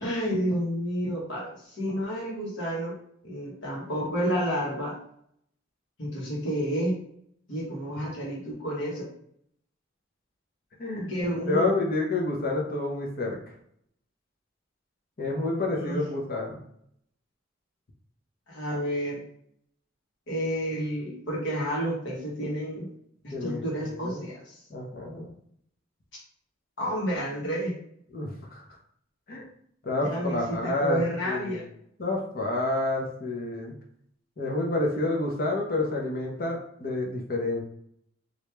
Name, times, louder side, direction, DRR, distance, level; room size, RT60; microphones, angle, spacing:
voice 1, 0.0-2.9 3.2-5.0 6.0-7.0 7.5-9.1 11.0-11.7 15.7-16.0 18.5-19.2 20.3-22.9 23.2-24.5 26.8-27.7 30.0-31.7, equal, 65° left, -4 dB, 1.3 m, -30 dB
voice 2, 10.8-11.1 11.5-13.4 15.2-16.6 23.3-24.2 24.7-25.3 28.1-28.6 29.3-29.5 29.8-31.6 32.0-33.7 34.4-37.6, left 2 dB, 50° left, 0 dB, 0.9 m, -29 dB
3.1 x 2.6 x 3.3 m, 0.69 s
head